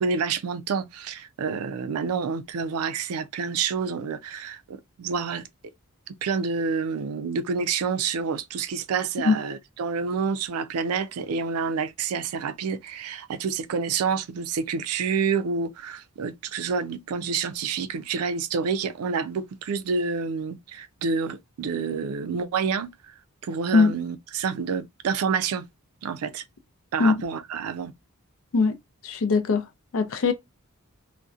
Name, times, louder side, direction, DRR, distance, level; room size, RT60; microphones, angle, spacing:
voice 1, 0.0-5.5 6.1-23.1 23.4-25.7 26.0-26.4 26.9-27.9, right 5 dB, 90° right, 0.4 m, -28 dB
voice 2, 29.0-29.7 29.9-30.3, left 4 dB, 70° left, 0.4 m, -20 dB
2.6 x 2.1 x 2.3 m
head